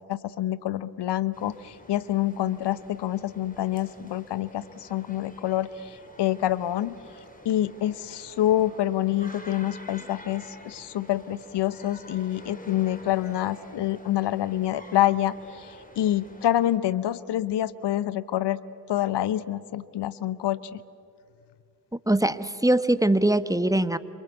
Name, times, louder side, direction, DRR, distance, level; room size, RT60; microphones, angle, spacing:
voice 1, 0.1-6.9 7.4-18.6 18.9-20.8, left 12 dB, 60° left, 17 dB, 1.0 m, -27 dB
sound 1, 1.3-16.8, left 1 dB, 15° left, 5.1 m, -48 dB
voice 2, 22.1-24.0, right 1 dB, 5° right, 13 dB, 1.2 m, -22 dB
27.0 x 24.5 x 8.2 m, 2.4 s
hypercardioid pair, 40°, 46 cm